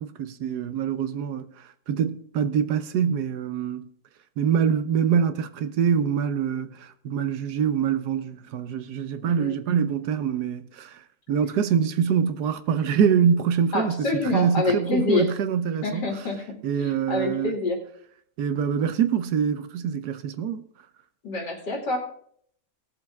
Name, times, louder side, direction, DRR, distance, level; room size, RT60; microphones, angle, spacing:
voice 1, 0.0-1.5 1.9-3.9 4.4-11.0 11.3-14.1 14.3-16.0 16.6-17.5 18.4-20.6, right 7 dB, 75° right, 1.3 m, -24 dB
voice 2, 9.2-9.6 13.7-15.3 15.8-17.8 21.2-22.0, left 2 dB, 85° left, 3.3 m, -27 dB
18.5 x 6.9 x 3.6 m
omnidirectional pair, 1.8 m